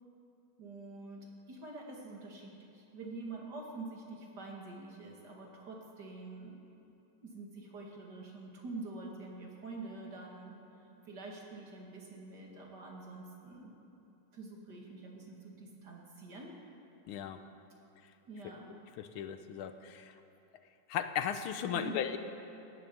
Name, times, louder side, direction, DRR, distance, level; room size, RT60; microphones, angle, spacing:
voice 1, 0.6-6.6 7.2-10.6 11.0-13.7 14.3-16.6 18.3-18.7 21.7-22.0, right 3 dB, 50° right, -1 dB, 2.6 m, -46 dB
voice 2, 17.1-17.4 19.0-20.1 20.9-22.2, left 9 dB, 80° left, 9 dB, 1.6 m, -36 dB
18.0 x 11.5 x 6.9 m, 2.8 s
omnidirectional pair, 2.3 m